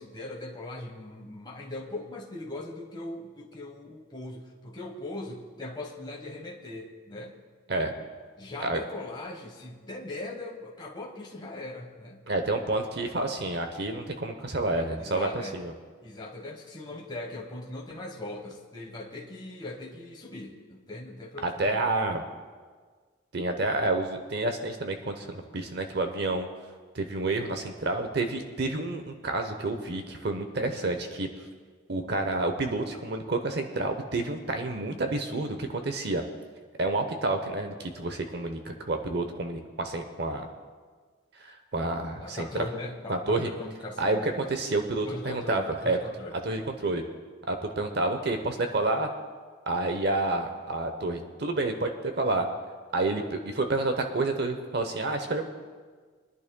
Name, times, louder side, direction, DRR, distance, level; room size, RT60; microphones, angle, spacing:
voice 1, 0.0-7.4 8.4-12.2 15.0-15.6 16.0-21.9 42.2-44.5 45.0-46.7, left 2 dB, 20° left, -2 dB, 1.2 m, -40 dB
voice 2, 12.3-15.7 21.4-22.2 23.3-26.5 26.9-31.3 31.9-36.2 36.8-40.5 41.4-42.5 43.1-43.5 44.0-46.0 46.4-47.0 47.5-49.1 49.7-52.5 52.9-55.4, right 2 dB, 55° right, 6 dB, 0.9 m, -29 dB
23.5 x 11.0 x 2.3 m, 1.5 s
head